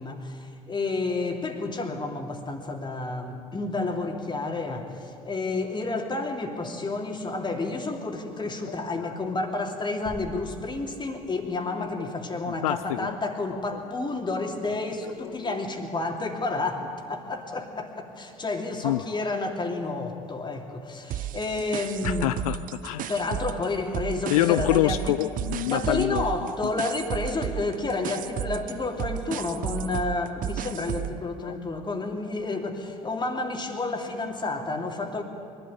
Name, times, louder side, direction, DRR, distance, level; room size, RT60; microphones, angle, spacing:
voice 1, 0.0-22.3 23.1-25.2 25.7-35.2, left 3 dB, 25° left, 3 dB, 2.9 m, -30 dB
voice 2, 9.0-9.3 12.0-12.1 12.6-13.2 13.7-13.8 15.2-15.5 18.8-19.0 19.8-20.0 22.0-23.1 24.3-26.2 26.6-26.7 31.4-31.6, left 15 dB, 70° left, 14 dB, 0.5 m, -27 dB
sound 1, 10.0-11.6, right 1 dB, 20° right, 3.4 m, -44 dB
sound 2, 21.1-23.7 23.9-31.2, right 11 dB, 45° right, 0.7 m, -33 dB
23.0 x 12.5 x 10.0 m, 2.6 s
figure-of-eight pair, 60°, 19 cm